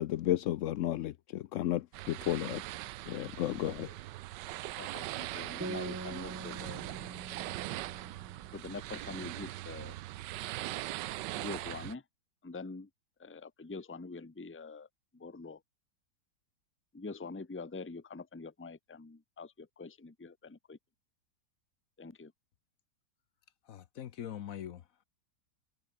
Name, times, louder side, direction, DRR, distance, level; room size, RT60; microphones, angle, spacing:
voice 1, 0.0-2.6 3.1-3.9, left 13 dB, 80° left, 0.6 m, -33 dB
sound 1, 1.9-11.9, right 16 dB, 80° right, 1.2 m, -41 dB
voice 2, 3.6-3.9 4.8-6.9 8.5-10.0 11.3-12.0 12.4-12.9 13.2-14.9 15.1-15.6 16.9-20.8 22.0-22.3, left 4 dB, 10° left, 0.7 m, -45 dB
sound 2, 5.6-9.1, right 2 dB, 25° right, 0.3 m, -44 dB
voice 3, 23.6-25.0, left 10 dB, 60° left, 1.1 m, -43 dB
omnidirectional pair, 1.9 m